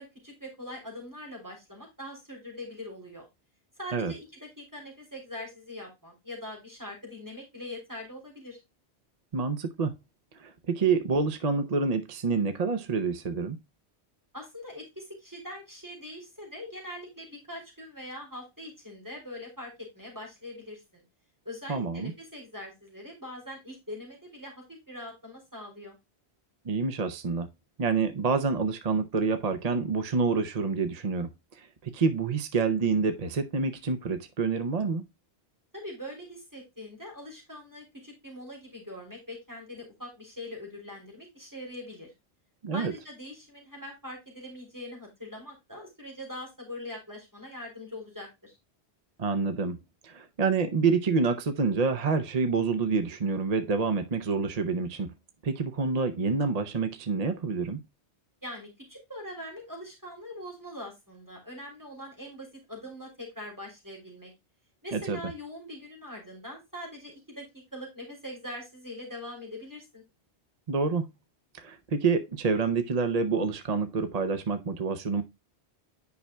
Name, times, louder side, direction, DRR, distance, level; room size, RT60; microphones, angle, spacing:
voice 1, 0.0-3.3 3.8-4.2 4.6-8.6 14.3-21.0 21.4-25.9 35.7-42.1 42.7-48.5 58.4-64.3 64.8-70.0, left 1 dB, 15° right, 3.2 m, -42 dB
voice 2, 9.3-9.9 10.4-13.6 21.7-22.1 26.6-27.5 27.8-31.3 31.6-35.0 42.6-42.9 49.2-49.8 50.0-55.1 55.4-57.8 64.9-65.2 70.7-71.1 71.5-75.2, right 4 dB, 40° right, 0.8 m, -27 dB
9.4 x 5.7 x 2.2 m
omnidirectional pair, 1.1 m